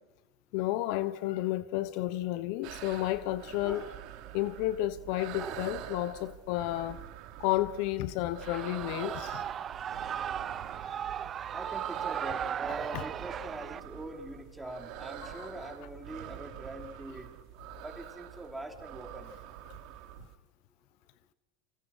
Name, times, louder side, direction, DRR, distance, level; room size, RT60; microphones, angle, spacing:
voice 1, 0.5-3.8 4.3-7.0 7.4-9.1 12.9-13.0 15.4-15.5, left 15 dB, 65° left, 1.1 m, -31 dB
sound 1, 2.6-20.3, right 12 dB, 60° right, 3.1 m, -46 dB
Shout / Cheering, 8.4-13.8, right 8 dB, 35° right, 0.8 m, -37 dB
voice 2, 11.5-17.3 17.8-19.3, right 1 dB, 5° right, 5.1 m, -43 dB
29.0 x 26.0 x 6.4 m
hypercardioid pair, 105°, 0 cm